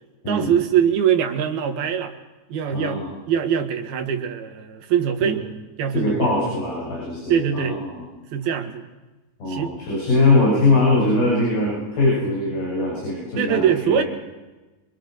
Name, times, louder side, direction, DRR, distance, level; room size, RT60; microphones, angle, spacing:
voice 1, 0.3-2.1 2.5-3.0 3.3-5.4 5.8-6.3 7.3-7.8 8.3-8.8 9.5-9.7 10.1-10.2 13.4-14.0, right 8 dB, 85° right, 5 dB, 3.8 m, -22 dB
voice 2, 2.7-3.1 5.2-5.4 5.9-8.1 9.4-14.1, left 2 dB, 80° left, -5 dB, 9.0 m, -21 dB
26.5 x 24.5 x 6.6 m, 1.1 s
omnidirectional pair, 4.2 m